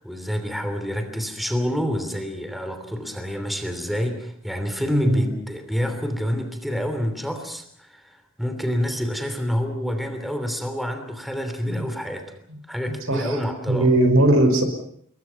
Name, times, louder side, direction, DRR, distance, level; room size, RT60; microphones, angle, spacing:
voice 1, 0.0-12.3 12.7-13.9, equal, ahead, 7 dB, 3.0 m, -28 dB
voice 2, 4.9-5.2 11.7-11.8 13.1-13.4 13.7-14.6, right 1 dB, 80° right, 7 dB, 5.3 m, -19 dB
28.5 x 22.0 x 5.8 m, 0.64 s
head